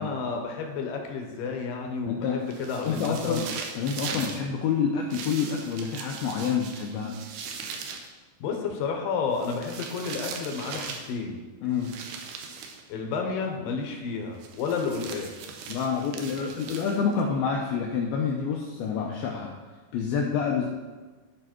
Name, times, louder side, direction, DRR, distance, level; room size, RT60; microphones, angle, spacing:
voice 1, 0.0-3.4 4.1-4.3 8.4-11.4 12.9-15.6, left 5 dB, 75° left, 2 dB, 2.1 m, -31 dB
voice 2, 2.1-2.5 2.8-3.5 3.8-7.2 11.6-12.0 15.7-19.5 19.9-20.7, left 6 dB, 90° left, 0 dB, 2.1 m, -28 dB
sound 1, 2.5-4.4 5.1-8.1 9.3-11.1 11.8-12.8 14.4-17.2, right 5 dB, 75° right, 2.7 m, -39 dB
13.5 x 5.3 x 4.5 m, 1.3 s
omnidirectional pair, 5.3 m